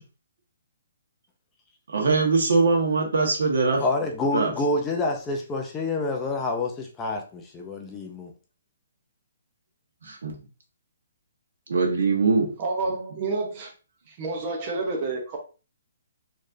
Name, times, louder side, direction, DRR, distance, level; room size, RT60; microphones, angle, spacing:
voice 1, 1.9-3.8 4.3-4.5 10.0-10.3 11.7-12.5, right 4 dB, 75° right, 1.4 m, -22 dB
voice 2, 3.8-8.3, left 2 dB, 10° left, 0.4 m, -28 dB
voice 3, 12.6-13.7 14.1-15.4, right 3 dB, 25° right, 0.8 m, -29 dB
4.2 x 3.1 x 2.6 m
hypercardioid pair, 175°, 0 cm